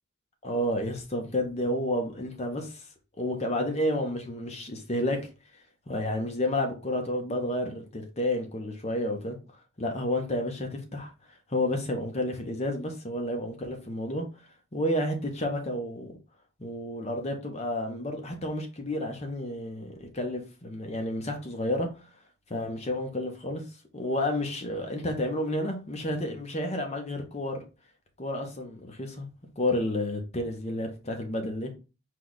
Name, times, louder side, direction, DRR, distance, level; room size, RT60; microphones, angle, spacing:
voice 1, 0.4-2.8 3.2-5.3 5.9-9.4 9.8-11.1 11.5-14.3 14.7-16.1 16.6-22.1 22.5-23.6 23.9-27.6 28.2-29.3 29.6-31.7, left 1 dB, 30° left, 0.7 m, -30 dB
4.7 x 2.3 x 3.9 m
head